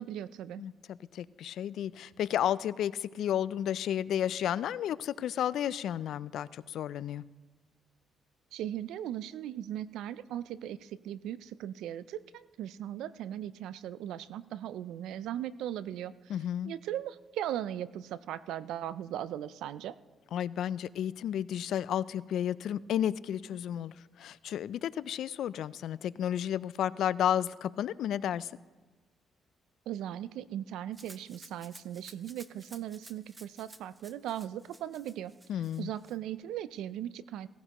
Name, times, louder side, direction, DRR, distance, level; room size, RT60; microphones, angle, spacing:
voice 1, 0.0-0.6 8.5-16.4 16.6-20.0 29.9-35.3 35.8-37.5, right 11 dB, 85° right, 16 dB, 0.4 m, -38 dB
voice 2, 0.6-7.2 16.3-16.7 20.3-28.5 35.5-35.9, left 10 dB, 75° left, 18 dB, 0.3 m, -32 dB
Rattle (instrument), 30.9-36.2, right 2 dB, 20° right, 0.8 m, -54 dB
17.0 x 15.0 x 3.0 m, 1.3 s
cardioid pair, 90°, 0 cm